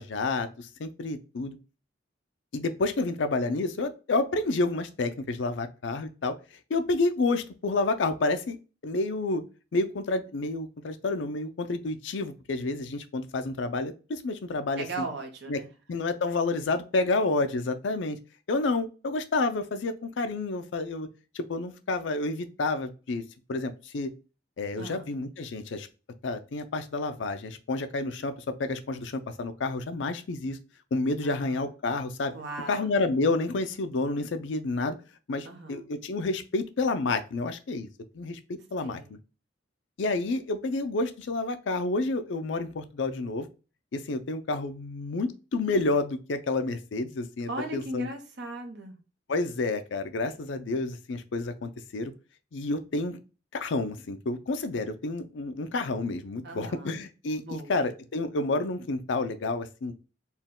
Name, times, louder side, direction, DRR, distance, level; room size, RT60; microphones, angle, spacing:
voice 1, 0.0-1.6 2.5-6.4 6.7-8.6 8.8-9.4 9.7-15.0 15.5-15.6 15.9-18.2 18.5-21.1 21.3-23.2 23.5-24.1 24.6-25.9 26.2-30.6 30.9-32.3 32.7-35.0 35.3-37.9 38.1-38.4 38.7-39.2 40.0-43.5 43.9-48.1 49.3-52.1 52.5-53.2 53.5-59.9, left 3 dB, 75° left, 9 dB, 0.5 m, -29 dB
voice 2, 14.8-15.7 24.8-25.1 31.2-31.7 32.3-32.9 35.4-35.9 38.8-39.1 47.5-48.9 56.4-56.9 57.4-57.8, right 2 dB, 65° right, 3 dB, 0.9 m, -38 dB
4.3 x 2.2 x 3.6 m, 0.33 s
head